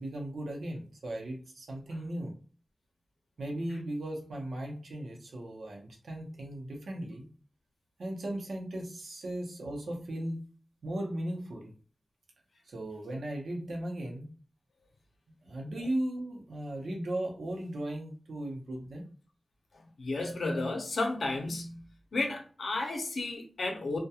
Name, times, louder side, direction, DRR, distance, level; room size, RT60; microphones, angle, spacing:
voice 1, 0.0-2.3 3.4-7.3 8.0-10.4 10.8-11.7 12.7-14.3 15.4-19.0, right 1 dB, 90° right, 0.7 m, -37 dB
voice 2, 20.0-21.8 22.1-24.0, left 2 dB, 85° left, 0.6 m, -32 dB
2.3 x 2.2 x 2.8 m
wide cardioid pair, 85°, 0 cm